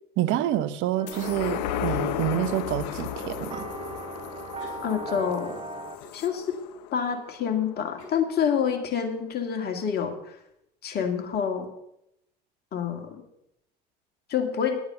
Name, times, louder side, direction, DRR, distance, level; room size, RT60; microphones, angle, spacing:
voice 1, 0.2-3.7, right 12 dB, 65° right, 12 dB, 0.9 m, -27 dB
sound 1, 1.0-6.0, right 3 dB, 30° right, 1.7 m, -39 dB
sound 2, 1.1-7.9 8.3-8.4, left 11 dB, 85° left, 0.7 m, -34 dB
Cough, 2.8-3.6 4.6-4.9 5.4-5.5 6.0-6.7 7.3-7.4 8.0-8.3, left 3 dB, 70° left, 4.4 m, -49 dB
voice 2, 4.8-5.5 6.1-6.6 6.9-10.4 10.8-11.7 12.7-13.2 14.3-14.8, left 7 dB, 50° left, 5 dB, 2.1 m, -27 dB
10.0 x 8.6 x 6.7 m, 0.79 s
hypercardioid pair, 75°, 21 cm